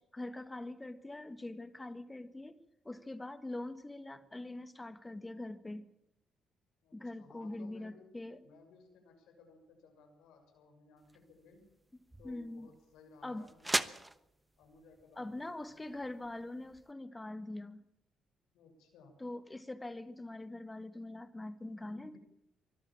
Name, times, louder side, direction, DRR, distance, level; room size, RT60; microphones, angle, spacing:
voice 1, 0.0-2.6 2.8-5.9 6.9-8.4 12.2-12.7 13.2-13.5 15.2-17.8 19.2-22.2, left 2 dB, 15° left, 12 dB, 1.6 m, -43 dB
voice 2, 6.8-8.1 8.4-11.6 12.2-13.9 14.6-15.7 18.5-19.1 21.8-22.2, left 4 dB, 90° left, 4 dB, 6.2 m, -59 dB
sound 1, 11.0-16.9, right 1 dB, 10° right, 1.0 m, -41 dB
24.0 x 13.0 x 8.7 m, 0.86 s
cardioid pair, 90°, 0 cm